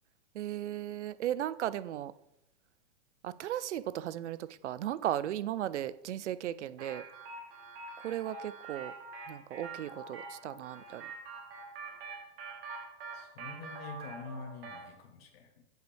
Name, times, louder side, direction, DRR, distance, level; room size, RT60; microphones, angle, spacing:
voice 1, 0.3-2.1 3.2-7.0 8.0-8.9 9.3-11.0, right 12 dB, 85° right, 0.5 m, -36 dB
sound 1, 6.8-14.9, right 4 dB, 55° right, 1.8 m, -45 dB
voice 2, 13.1-15.6, left 4 dB, 60° left, 1.5 m, -46 dB
7.9 x 4.7 x 3.4 m
hypercardioid pair, 130°, 34 cm